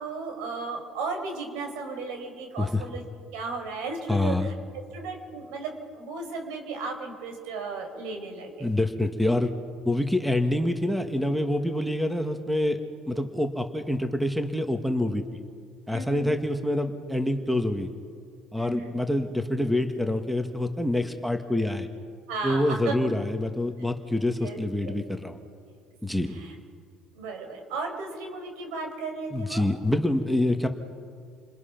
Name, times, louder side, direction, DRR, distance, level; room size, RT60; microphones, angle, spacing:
voice 1, 0.0-3.0 3.3-4.5 4.9-8.7 15.9-16.4 18.6-19.0 22.3-22.9 24.4-24.6 24.8-24.9 26.2-26.5 27.1-29.6, right 3 dB, 85° right, 4 dB, 4.7 m, -35 dB
voice 2, 4.1-4.5 8.6-9.5 9.8-12.8 13.1-15.4 15.9-17.9 18.5-21.9 22.4-25.4 26.0-26.3 29.3-30.7, left 1 dB, ahead, 6 dB, 1.7 m, -26 dB
29.0 x 21.0 x 6.0 m, 2.2 s
cardioid pair, 110°, 0 cm